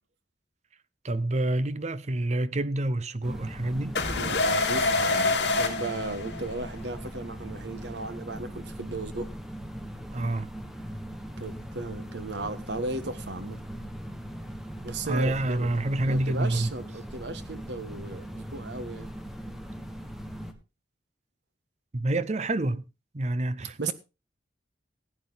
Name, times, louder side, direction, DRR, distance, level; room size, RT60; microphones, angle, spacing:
voice 1, 1.0-4.0 10.1-10.5 15.0-16.7 21.9-22.8 23.1-23.9, right 1 dB, 40° right, 0.7 m, -27 dB
sound 1, 3.2-20.5, equal, ahead, 1.4 m, -40 dB
sound 2, 4.0-6.7, left 3 dB, 70° left, 3.1 m, -26 dB
voice 2, 4.2-9.3 11.4-13.8 14.8-15.7 16.0-19.1 23.8-23.9, right 2 dB, 75° right, 1.4 m, -36 dB
16.0 x 9.0 x 4.0 m
head